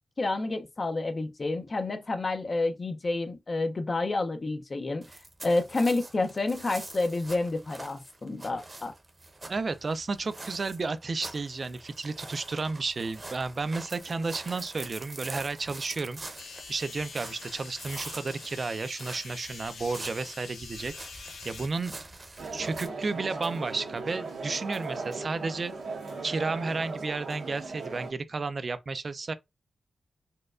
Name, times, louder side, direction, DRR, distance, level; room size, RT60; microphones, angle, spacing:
voice 1, 0.2-5.0 5.4-8.9, left 2 dB, 45° left, 0.5 m, -29 dB
sound 1, 5.0-22.9, right 2 dB, 35° right, 0.8 m, -45 dB
voice 2, 9.5-16.2 16.7-22.0 22.5-25.7 26.2-29.3, right 3 dB, 50° right, 0.4 m, -32 dB
sound 2, 16.4-21.7, left 5 dB, 85° left, 0.6 m, -45 dB
sound 3, 22.4-28.1, right 3 dB, 85° right, 1.0 m, -38 dB
4.2 x 2.2 x 2.4 m
cardioid pair, 65°, 0 cm